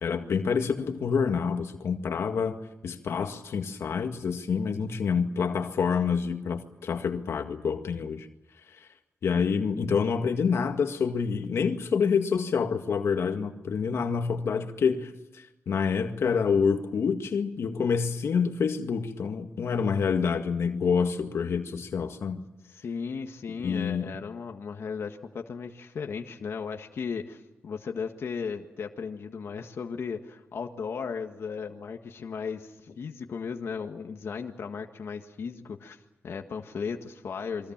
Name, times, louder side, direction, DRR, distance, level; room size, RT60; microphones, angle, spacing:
voice 1, 0.0-2.6 2.8-8.3 9.2-22.4 23.6-24.1, left 6 dB, 90° left, 6 dB, 1.9 m, -27 dB
voice 2, 22.7-36.0 36.2-37.7, left 6 dB, 70° left, 3 dB, 1.7 m, -36 dB
28.5 x 23.0 x 7.4 m, 0.94 s
wide cardioid pair, 145°, 4 cm